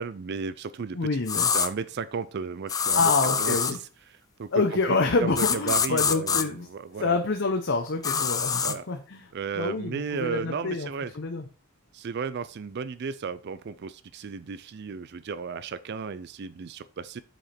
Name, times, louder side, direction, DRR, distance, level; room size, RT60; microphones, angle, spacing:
voice 1, 0.0-3.1 3.4-4.8 5.2-7.2 8.6-8.8 9.3-11.1 11.9-17.2, right 5 dB, 50° right, 14 dB, 0.4 m, -34 dB
voice 2, 0.9-1.5 2.9-3.8 4.5-6.7 7.0-9.2 9.6-10.9 11.1-11.4, left 3 dB, 55° left, 4 dB, 0.8 m, -27 dB
sound 1, 1.3-1.7 2.7-3.8 5.4-6.4 8.0-8.8, left 6 dB, 15° left, 0.4 m, -25 dB
7.7 x 5.0 x 4.3 m, 0.37 s
head